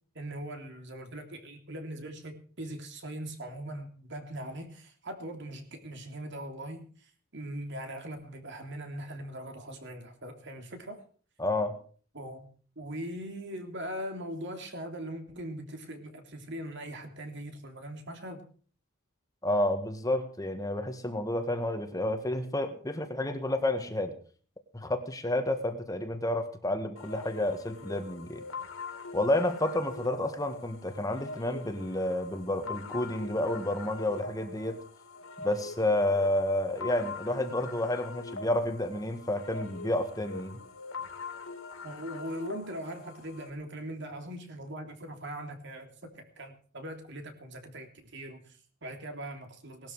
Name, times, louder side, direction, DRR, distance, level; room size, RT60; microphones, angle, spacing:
voice 1, 0.1-11.0 12.1-18.4 41.8-49.9, right 1 dB, 55° right, 5 dB, 3.3 m, -41 dB
voice 2, 11.4-11.8 19.4-24.1 24.7-28.4 29.1-34.8 35.4-40.6, left 1 dB, 15° left, 7 dB, 1.6 m, -30 dB
sound 1, 27.0-43.5, left 4 dB, 75° left, 3.1 m, -43 dB
19.0 x 13.0 x 4.8 m, 0.43 s
head